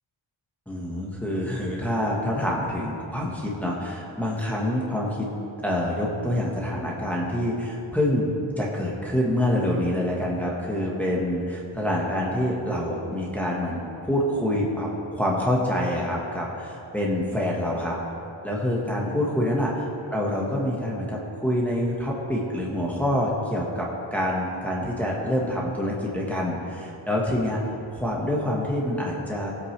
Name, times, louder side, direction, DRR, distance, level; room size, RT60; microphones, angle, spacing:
voice 1, 0.7-5.2 5.6-17.9 18.4-19.7 20.1-29.5, left 1 dB, 5° left, -4 dB, 1.4 m, -26 dB
18.5 x 8.3 x 3.3 m, 2.9 s
wide cardioid pair, 120°, 50 cm